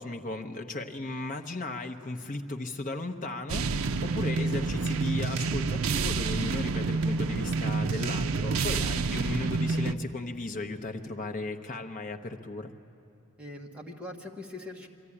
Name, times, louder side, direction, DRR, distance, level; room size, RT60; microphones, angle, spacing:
voice 1, 0.0-12.7, left 2 dB, 35° left, 5 dB, 0.9 m, -36 dB
sound 1, 3.5-9.9, right 4 dB, 65° right, 0.5 m, -28 dB
voice 2, 13.4-14.9, left 2 dB, 5° right, -1 dB, 1.3 m, -42 dB
23.5 x 14.0 x 9.9 m, 2.6 s
head